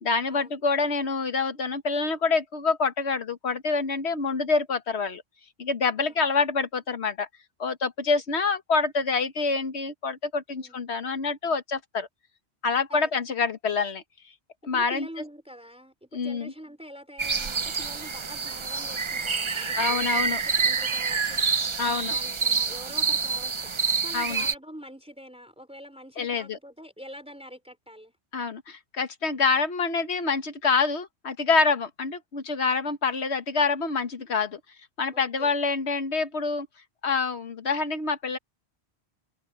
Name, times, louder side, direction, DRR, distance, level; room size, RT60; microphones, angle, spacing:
voice 1, 0.0-5.2 5.6-7.3 7.6-12.1 12.6-14.0 14.6-15.1 16.1-16.5 19.7-20.4 21.8-22.1 24.1-24.5 26.2-26.6 28.3-34.6 35.0-36.7 37.0-38.4, left 4 dB, 75° left, 1.7 m, -26 dB
voice 2, 6.0-6.3 10.5-10.8 12.9-13.1 14.7-28.2 35.1-35.6, equal, 5° right, 4.6 m, -45 dB
sound 1, 17.2-24.5, right 5 dB, 35° right, 0.6 m, -27 dB
omnidirectional pair, 1.1 m